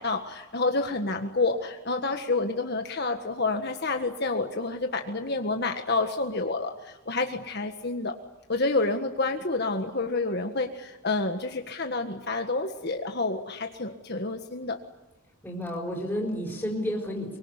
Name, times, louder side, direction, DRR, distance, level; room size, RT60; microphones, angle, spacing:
voice 1, 0.0-8.1 8.5-14.8, left 3 dB, 50° left, 5 dB, 1.7 m, -29 dB
voice 2, 15.4-17.4, equal, 10° left, -1 dB, 5.4 m, -31 dB
25.0 x 24.0 x 9.8 m, 1.0 s
head